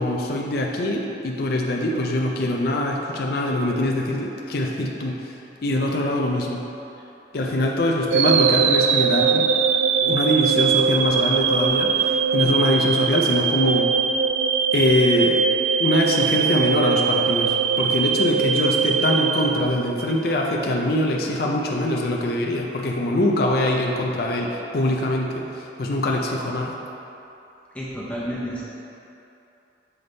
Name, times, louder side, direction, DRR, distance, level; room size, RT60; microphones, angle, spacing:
voice 1, 0.0-5.3 5.6-6.6 7.3-9.5 10.0-13.9 14.7-15.5 15.8-25.4 25.8-26.8, left 1 dB, 55° left, -1 dB, 0.5 m, -23 dB
sound 1, 8.1-20.2, right 6 dB, 90° right, 0.3 m, -21 dB
voice 2, 27.7-28.6, equal, 5° left, -7 dB, 0.7 m, -31 dB
7.1 x 3.5 x 3.9 m, 2.8 s
head